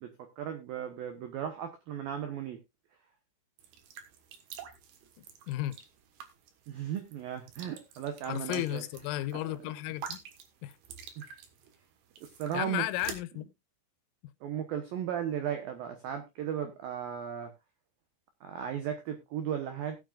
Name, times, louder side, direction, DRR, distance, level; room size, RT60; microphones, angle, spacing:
voice 1, 0.0-2.6 6.7-8.8 9.3-9.5 11.2-11.3 12.2-12.8 14.4-17.5 18.4-20.0, right 9 dB, 90° right, 2.0 m, -36 dB
sound 1, 3.6-13.2, right 7 dB, 65° right, 2.7 m, -48 dB
voice 2, 5.2-5.8 8.3-10.2 10.6-10.8 12.5-13.5, left 15 dB, 90° left, 3.5 m, -34 dB
19.0 x 7.6 x 2.4 m
omnidirectional pair, 5.9 m